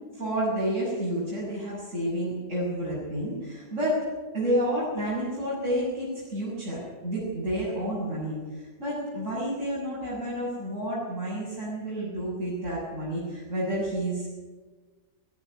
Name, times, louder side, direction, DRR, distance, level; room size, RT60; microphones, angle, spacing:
voice 1, 0.1-4.0 4.3-14.3, equal, 55° right, -8 dB, 7.4 m, -30 dB
18.5 x 16.5 x 9.8 m, 1.4 s
omnidirectional pair, 1.5 m